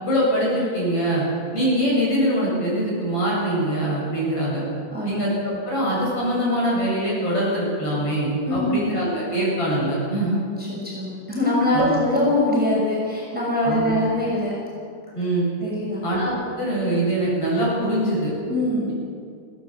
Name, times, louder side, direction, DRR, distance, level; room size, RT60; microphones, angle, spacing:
voice 1, 0.0-1.3 1.5-4.6 5.0-5.4 5.6-10.4 11.7-11.9 13.6-14.0 15.1-15.5 16.0-18.3, right 1 dB, 45° left, -5 dB, 8.7 m, -23 dB
voice 2, 8.5-8.8 10.6-14.5 15.6-16.0 18.5-18.9, left 1 dB, 5° right, -5 dB, 6.0 m, -23 dB
21.0 x 18.0 x 8.0 m, 2.3 s
omnidirectional pair, 3.8 m